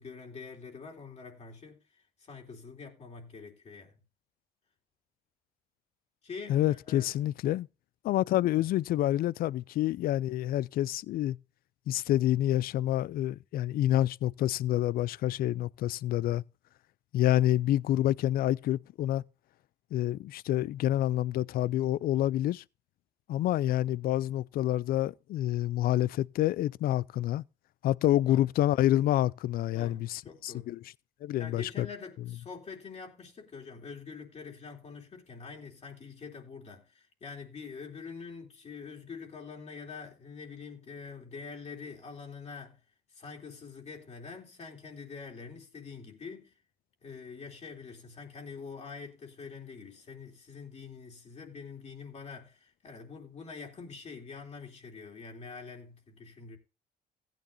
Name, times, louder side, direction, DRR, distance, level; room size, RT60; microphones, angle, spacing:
voice 1, 0.0-1.8 2.3-4.0 6.2-7.1 8.5-8.7 28.3-28.4 29.7-30.7 31.4-42.8 43.1-46.5 47.0-56.6, left 5 dB, 40° left, 3.6 m, -45 dB
voice 2, 6.5-7.7 8.0-11.4 11.9-16.4 17.1-19.2 19.9-22.6 23.3-27.4 27.8-30.8 31.2-31.9, left 13 dB, 60° left, 0.4 m, -28 dB
16.0 x 9.1 x 2.6 m
cardioid pair, 110°, 17 cm